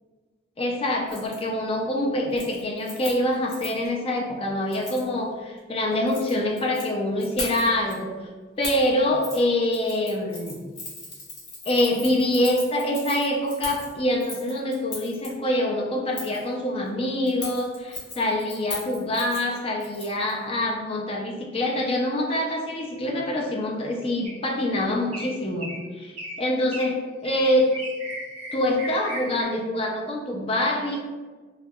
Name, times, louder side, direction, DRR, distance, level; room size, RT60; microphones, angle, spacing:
voice 1, 0.6-8.1 8.6-10.6 11.7-27.7 28.5-31.0, left 1 dB, 30° left, 0 dB, 0.3 m, -25 dB
Keys jangling, 1.1-1.4 1.8-2.0 2.3-3.9 4.7-5.1 5.9-6.9 7.2-7.9 8.6-8.9 9.2-9.4 9.7-15.3 16.1-16.5 17.3-20.3 20.6-20.7, left 2 dB, 60° left, 0.8 m, -38 dB
sound 1, 24.2-24.6 25.1-25.3 25.6-25.8 26.2-26.4 26.7-26.9 27.2-29.4, equal, 35° right, 0.5 m, -36 dB
2.6 x 2.1 x 2.2 m, 1.4 s
head